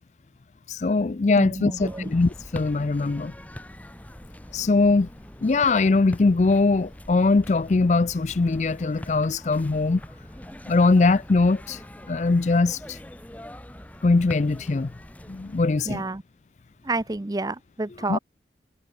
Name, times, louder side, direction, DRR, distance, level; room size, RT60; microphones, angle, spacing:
voice 1, 0.7-3.3 4.5-5.1 5.4-10.0 10.7-11.8 12.1-13.0 14.0-14.9 15.3-16.0 18.1-18.2, left 3 dB, 40° left, 0.4 m, -21 dB
voice 2, 1.4-2.1 15.9-16.2 16.8-18.2, right 2 dB, 20° right, 0.5 m, -29 dB
sound 1, 1.8-15.6, equal, 10° left, 1.4 m, -43 dB
head